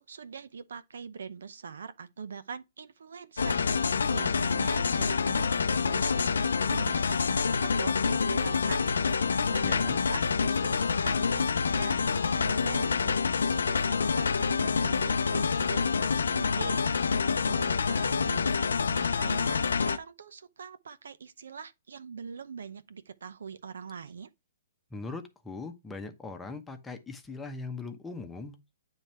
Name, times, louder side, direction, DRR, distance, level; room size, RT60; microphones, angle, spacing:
voice 1, 0.0-6.3 6.7-8.9 9.5-13.2 13.5-16.8 17.1-18.5 18.9-24.3, right 6 dB, 80° right, 0.7 m, -43 dB
sound 1, 3.4-20.0, left 5 dB, 90° left, 0.5 m, -27 dB
voice 2, 9.6-10.0 24.9-28.7, left 3 dB, 10° left, 0.9 m, -40 dB
9.1 x 3.2 x 4.3 m
hypercardioid pair, 150°, 0 cm